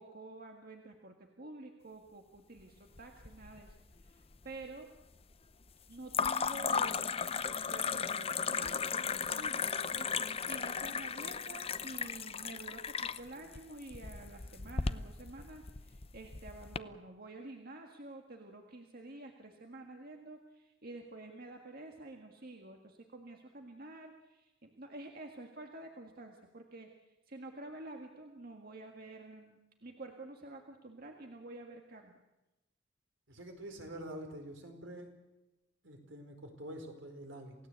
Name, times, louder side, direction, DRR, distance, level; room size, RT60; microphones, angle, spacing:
voice 1, 0.0-4.9 5.9-7.1 7.5-32.2, right 2 dB, 50° right, 3 dB, 1.8 m, -49 dB
sound 1, 3.0-3.7 4.0-4.6 6.1-16.8, left 6 dB, 30° left, 0.7 m, -36 dB
voice 2, 33.3-35.1 35.8-37.6, right 1 dB, 75° right, 4 dB, 4.7 m, -46 dB
28.0 x 17.0 x 8.2 m, 1.0 s
head